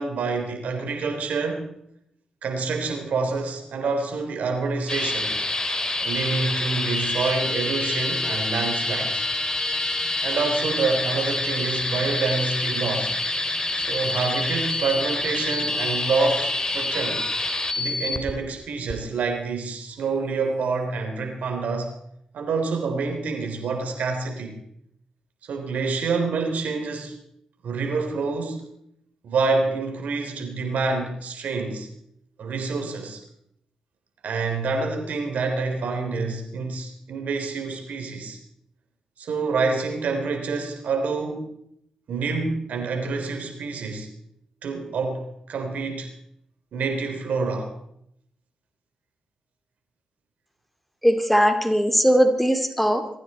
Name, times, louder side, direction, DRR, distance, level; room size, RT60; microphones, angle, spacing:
voice 1, 0.0-1.7 2.4-5.4 6.0-9.2 10.2-13.1 13.7-17.2 17.8-21.9 22.3-24.6 25.4-27.1 27.6-28.7 29.2-31.9 32.4-33.2 34.2-38.4 39.2-41.5 42.1-44.1 44.6-46.1 46.7-47.7, right 4 dB, 75° right, 4 dB, 3.5 m, -27 dB
sound 1, 4.9-18.3 18.9-19.0, left 2 dB, 30° left, 3.1 m, -27 dB
voice 2, 51.0-53.2, equal, 5° left, 7 dB, 2.5 m, -20 dB
23.0 x 14.5 x 4.3 m, 0.74 s
supercardioid pair, 40°, 3 cm